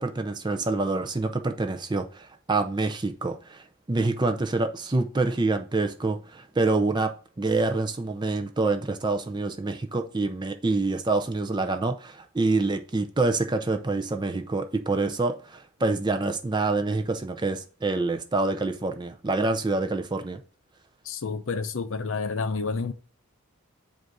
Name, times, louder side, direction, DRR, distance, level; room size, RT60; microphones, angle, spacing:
voice 1, 0.0-3.6 3.9-20.4, right 3 dB, 20° right, 0.5 m, -26 dB
voice 2, 21.1-22.9, left 4 dB, 60° left, 0.6 m, -29 dB
7.7 x 2.6 x 4.7 m
head